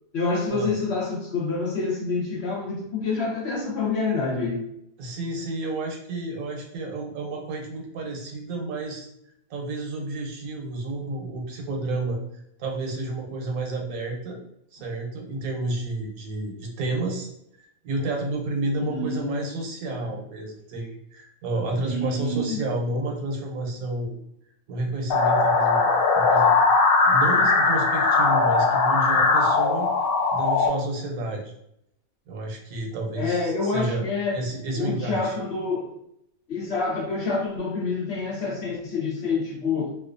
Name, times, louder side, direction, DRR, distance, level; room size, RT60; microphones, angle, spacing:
voice 1, 0.1-4.6 18.8-19.4 21.8-22.6 33.2-34.4 34.8-35.9 36.5-40.0, left 3 dB, 55° left, -3 dB, 0.8 m, -27 dB
voice 2, 5.0-9.1 9.5-12.2 12.6-14.4 14.7-17.3 17.6-24.1 24.7-26.5 27.0-29.9 30.3-31.5 32.3-34.1 34.3-35.4, right 2 dB, 80° right, 1 dB, 1.1 m, -30 dB
sound 1, 25.1-30.7, left 4 dB, 80° left, 0.5 m, -20 dB
2.4 x 2.3 x 2.4 m, 0.76 s
omnidirectional pair, 1.5 m